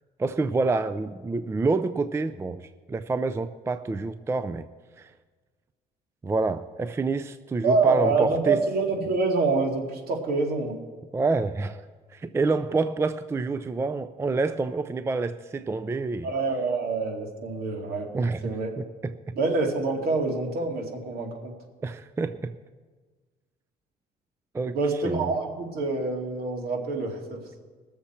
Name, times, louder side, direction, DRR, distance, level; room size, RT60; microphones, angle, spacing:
voice 1, 0.2-4.7 5.0-5.1 6.2-8.6 11.1-11.8 12.1-16.3 18.1-18.5 18.8-19.1 21.8-22.5 24.5-24.8 25.0-25.3, right 3 dB, 15° right, 11 dB, 0.4 m, -27 dB
voice 2, 7.6-10.8 16.2-18.1 18.4-18.7 19.4-21.5 24.7-27.4, right 3 dB, 65° right, 1 dB, 2.4 m, -26 dB
21.0 x 7.1 x 4.4 m, 1.4 s
cardioid pair, 110°, 17 cm